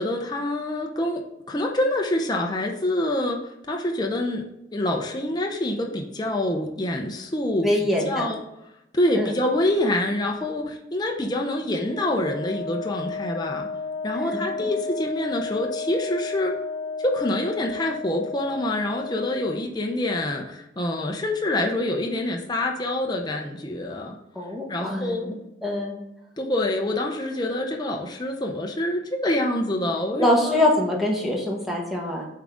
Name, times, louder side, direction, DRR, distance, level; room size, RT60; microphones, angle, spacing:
voice 1, 0.0-4.4 4.7-8.4 8.9-13.7 14.0-16.6 17.0-24.2 24.7-25.3 26.4-30.6, left 1 dB, 25° left, 1 dB, 0.6 m, -26 dB
voice 2, 7.6-8.3 9.1-9.3 14.1-14.7 24.3-25.3 25.6-26.0 30.2-32.3, left 1 dB, ahead, -2 dB, 1.1 m, -24 dB
Wind instrument woodwind instrument, 11.8-19.6, left 4 dB, 75° left, 0.9 m, -33 dB
7.3 x 3.7 x 3.6 m, 0.85 s
head